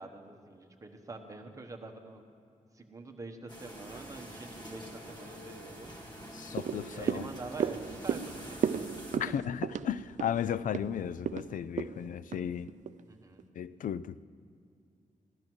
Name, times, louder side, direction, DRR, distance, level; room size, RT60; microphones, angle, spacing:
voice 1, 0.0-2.2 2.7-5.9 6.8-9.3 13.0-13.5, right 3 dB, 25° right, 1.1 m, -46 dB
sound 1, 3.5-9.2, equal, 30° left, 1.7 m, -47 dB
voice 2, 6.3-7.2 9.1-12.7 13.6-14.2, left 9 dB, 75° left, 0.4 m, -35 dB
sound 2, 6.6-13.0 13.4-13.5, right 8 dB, 65° right, 0.4 m, -35 dB
16.0 x 13.0 x 6.1 m
wide cardioid pair, 180°, 14 cm